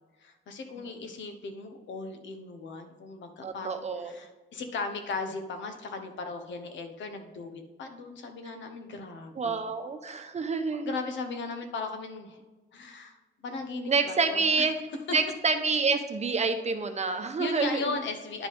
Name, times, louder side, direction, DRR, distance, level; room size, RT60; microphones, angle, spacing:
voice 1, 0.2-9.6 10.7-12.4 12.7-14.4 17.4-18.5, left 3 dB, 70° left, 6 dB, 1.1 m, -37 dB
voice 2, 3.4-4.1 9.4-10.9 13.9-14.8 15.1-17.9, right 4 dB, 35° right, 7 dB, 0.9 m, -28 dB
9.9 x 5.1 x 3.6 m, 1.2 s
cardioid pair, 90°, 20 cm